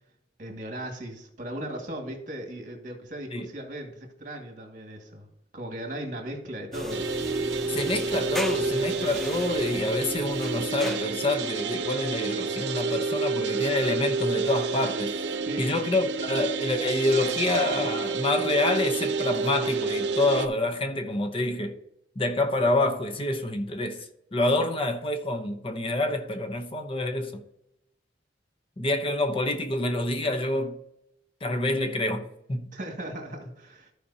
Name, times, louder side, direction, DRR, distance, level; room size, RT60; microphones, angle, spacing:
voice 1, 0.4-5.3 5.5-7.1 15.4-15.7 32.7-33.9, right 1 dB, 45° right, 1.9 m, -37 dB
sound 1, 6.7-11.4, equal, ahead, 0.4 m, -35 dB
sound 2, 6.9-20.5, right 4 dB, 80° right, 0.7 m, -29 dB
voice 2, 7.7-15.2 15.6-21.7 22.2-24.0 24.3-27.4 28.8-30.8 31.4-32.7, left 2 dB, 30° left, 0.8 m, -27 dB
14.0 x 5.0 x 2.8 m
head